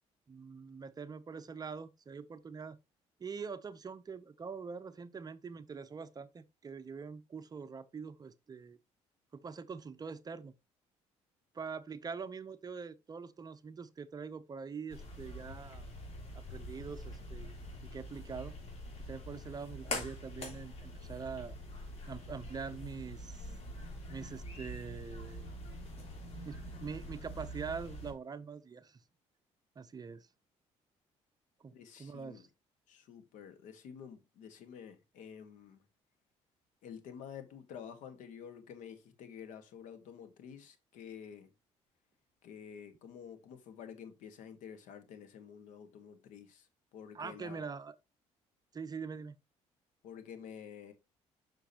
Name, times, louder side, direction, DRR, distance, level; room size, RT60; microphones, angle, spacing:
voice 1, 0.3-2.8 3.2-8.8 9.3-10.5 11.5-15.9 16.3-17.6 17.8-18.5 19.1-21.6 22.1-23.5 24.1-25.5 26.4-29.0 29.8-30.3 31.6-31.7 32.0-32.4 47.1-47.9 48.7-49.4, right 5 dB, 30° right, 0.6 m, -44 dB
sound 1, 14.9-28.1, left 1 dB, 55° left, 3.4 m, -45 dB
voice 2, 31.7-32.5 32.9-35.8 36.8-41.5 42.4-47.7 50.0-50.9, left 8 dB, 80° left, 1.6 m, -50 dB
6.8 x 6.1 x 2.9 m
cardioid pair, 90°, 13 cm